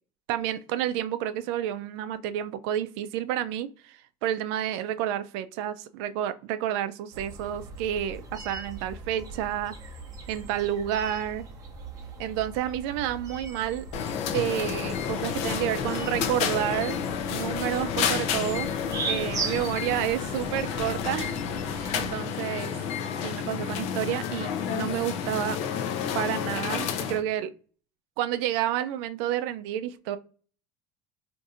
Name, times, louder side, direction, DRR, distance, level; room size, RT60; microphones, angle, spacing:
voice 1, 0.3-9.7 10.3-11.5 12.2-13.9 14.3-17.0 17.3-18.7 19.1-22.7 23.2-25.6 26.1-27.5 28.2-30.2, right 11 dB, 80° right, 0.4 m, -30 dB
sound 1, 7.1-22.2, right 4 dB, 25° right, 0.6 m, -40 dB
sound 2, 13.9-27.2, left 8 dB, 50° left, 0.5 m, -30 dB
2.6 x 2.4 x 4.1 m
cardioid pair, 175°, 14 cm